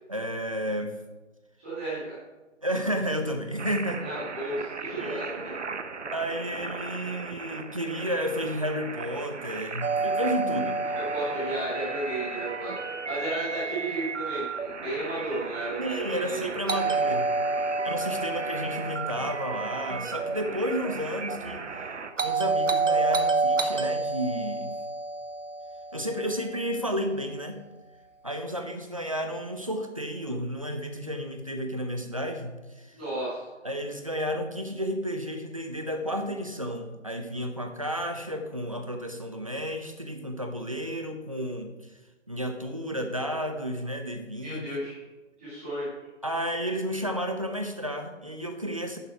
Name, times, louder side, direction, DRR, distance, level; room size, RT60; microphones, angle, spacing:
voice 1, 0.1-0.9 2.6-4.1 5.0-5.2 6.1-10.8 15.8-17.3 17.7-21.7 22.2-24.7 25.9-27.6 28.2-33.0 33.6-41.9 42.3-44.7 46.2-49.0, equal, 30° right, 5 dB, 0.7 m, -32 dB
voice 2, 1.6-2.2 4.0-5.7 10.9-12.7 13.0-16.5 16.8-16.9 32.9-33.5 44.4-45.0 45.4-45.9, right 2 dB, 10° right, -11 dB, 2.2 m, -33 dB
sound 1, 3.6-22.1, right 4 dB, 70° right, 0.9 m, -37 dB
Doorbell, 9.8-13.8 16.7-20.9 22.2-26.6, right 3 dB, 90° right, 1.2 m, -29 dB
11.0 x 6.7 x 4.7 m, 1.2 s
figure-of-eight pair, 175°, 37 cm